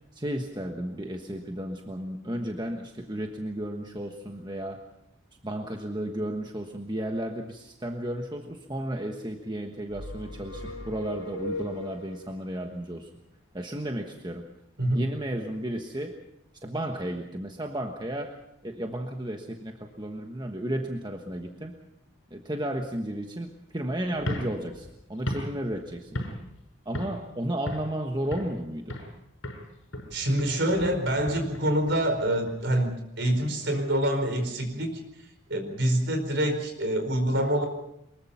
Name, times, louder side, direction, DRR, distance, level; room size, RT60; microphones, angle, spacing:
voice 1, 0.1-4.8 5.4-13.1 13.5-14.4 14.9-16.2 16.6-18.4 18.6-21.8 22.3-26.2 26.8-29.0, right 1 dB, 20° right, 3 dB, 1.3 m, -33 dB
sound 1, 9.9-12.3, left 1 dB, 85° left, 3.9 m, -37 dB
sound 2, 24.2-26.6 26.9-27.3 27.7-28.6 28.9-29.2 29.4-32.6, equal, 65° left, 5.9 m, -36 dB
voice 2, 30.1-32.9 33.2-35.0 35.5-37.7, right 1 dB, 55° right, 6 dB, 4.7 m, -26 dB
24.0 x 21.5 x 5.8 m, 0.79 s
head